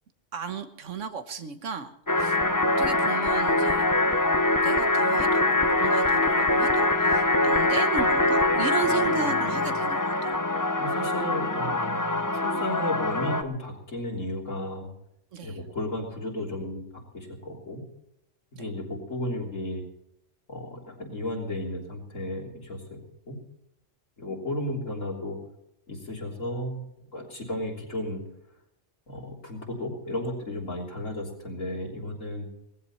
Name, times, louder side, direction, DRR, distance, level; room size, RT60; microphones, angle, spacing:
voice 1, 0.3-2.4 2.6-3.9 4.6-10.4 15.3-15.6 18.5-18.7, right 5 dB, 80° right, 10 dB, 1.5 m, -35 dB
sound 1, 2.1-13.4, left 2 dB, 20° left, 0.8 m, -23 dB
voice 2, 8.9-9.7 10.8-14.9 15.4-16.8 17.1-17.8 18.6-19.8 20.5-23.0 23.3-23.4 24.2-25.4 25.9-26.8 27.1-28.2 29.1-32.5, left 1 dB, 85° left, -1 dB, 3.8 m, -34 dB
19.0 x 15.0 x 4.3 m, 0.78 s
omnidirectional pair, 1.3 m